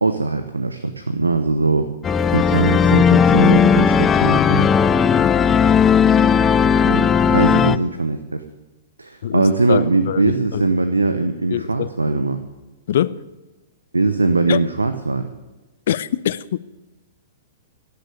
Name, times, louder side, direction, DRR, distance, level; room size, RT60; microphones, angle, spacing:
voice 1, 0.0-1.9 2.3-4.7 6.8-8.4 9.0-12.4 13.9-15.3, right 3 dB, 85° right, 0.9 m, -20 dB
sound 1, 2.0-7.8, left 6 dB, 20° left, 0.5 m, -15 dB
voice 2, 9.2-10.7 11.5-11.9 12.9-13.2 14.5-14.6 15.9-16.6, left 11 dB, 60° left, 0.6 m, -23 dB
16.5 x 7.0 x 8.4 m
figure-of-eight pair, 105°, 0 cm